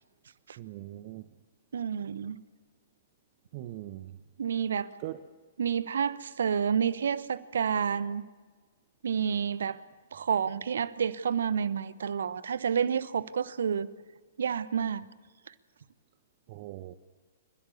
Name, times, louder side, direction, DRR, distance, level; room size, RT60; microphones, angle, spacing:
voice 1, 0.6-1.2 3.5-4.1 5.0-5.2 16.5-16.9, right 15 dB, 40° right, 1.0 m, -40 dB
voice 2, 1.7-2.4 4.4-4.9 5.6-8.2 9.0-9.8 10.1-13.9 14.4-15.1, right 7 dB, 65° right, 1.0 m, -29 dB
29.0 x 15.5 x 8.5 m
figure-of-eight pair, 110°, 0 cm